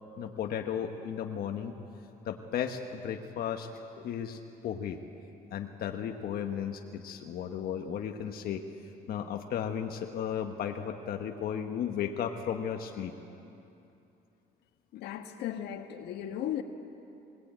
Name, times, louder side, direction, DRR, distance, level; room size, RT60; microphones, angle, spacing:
voice 1, 0.2-1.8 2.2-3.7 4.0-5.0 5.5-13.1, left 8 dB, 65° left, 4 dB, 1.3 m, -35 dB
voice 2, 14.9-16.6, left 11 dB, 80° left, 6 dB, 1.6 m, -36 dB
21.0 x 19.0 x 9.1 m, 2.8 s
cardioid pair, 110°, 17 cm